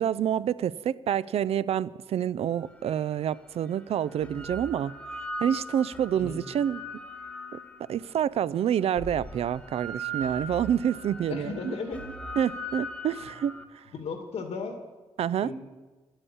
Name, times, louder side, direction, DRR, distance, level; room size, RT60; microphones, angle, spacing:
voice 1, 0.0-4.9 5.4-6.8 7.5-7.6 7.9-11.7 12.4-13.8 15.2-15.5, right 9 dB, 75° right, 0.4 m, -28 dB
sound 1, 2.9-3.0 3.9-8.2 9.0-13.6, right 1 dB, 10° left, 1.3 m, -39 dB
voice 2, 11.3-12.0 13.9-14.8 15.4-15.5, left 4 dB, 80° left, 2.3 m, -35 dB
12.5 x 8.9 x 8.6 m
wide cardioid pair, 140°, 10 cm